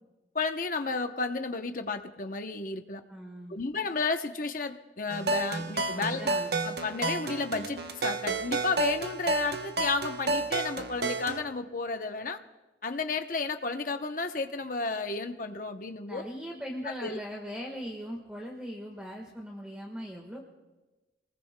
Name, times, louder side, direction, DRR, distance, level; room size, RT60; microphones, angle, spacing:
voice 1, 0.3-3.0 3.5-6.3 6.6-12.4 12.8-16.2 17.0-17.2, left 4 dB, 45° left, 7 dB, 0.8 m, -32 dB
voice 2, 3.1-3.6 5.9-6.5 16.1-20.4, equal, 5° right, 0 dB, 1.4 m, -40 dB
sound 1, 5.1-11.4, right 3 dB, 60° right, 0.9 m, -31 dB
28.5 x 20.0 x 2.2 m, 1.1 s
head